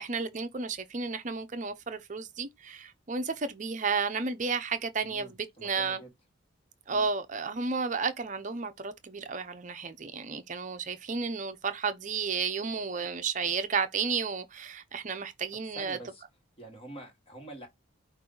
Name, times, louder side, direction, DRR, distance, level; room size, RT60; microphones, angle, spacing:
voice 1, 0.0-6.0 6.9-16.0, right 5 dB, 35° right, 0.6 m, -32 dB
voice 2, 5.0-6.1 6.9-7.1 15.7-16.2 16.6-17.7, right 1 dB, 25° left, 1.4 m, -46 dB
5.3 x 2.5 x 3.8 m
head